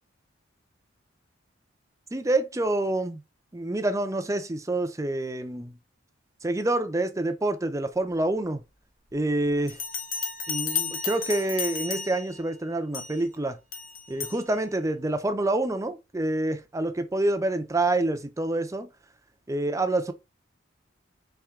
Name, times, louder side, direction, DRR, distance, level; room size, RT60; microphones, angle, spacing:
voice 1, 2.1-3.2 3.5-5.8 6.4-8.6 9.1-9.8 10.5-13.6 14.1-18.9 19.5-20.1, right 2 dB, 15° right, 0.5 m, -27 dB
Bell, 9.7-12.4 12.9-13.2 13.7-14.4, left 6 dB, 45° left, 0.9 m, -33 dB
4.5 x 3.3 x 3.6 m
head